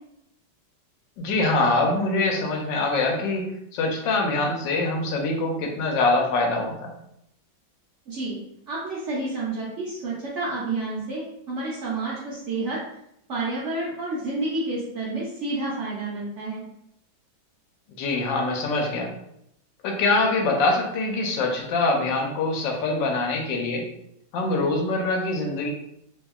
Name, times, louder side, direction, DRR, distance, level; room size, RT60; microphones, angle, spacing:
voice 1, 1.2-7.0 18.0-19.1 19.8-23.8 24.3-25.7, left 2 dB, 75° left, 1 dB, 1.2 m, -24 dB
voice 2, 8.1-8.4 8.7-12.8 13.3-16.6, right 2 dB, 75° right, -6 dB, 0.6 m, -29 dB
2.7 x 2.7 x 2.3 m, 0.77 s
omnidirectional pair, 2.1 m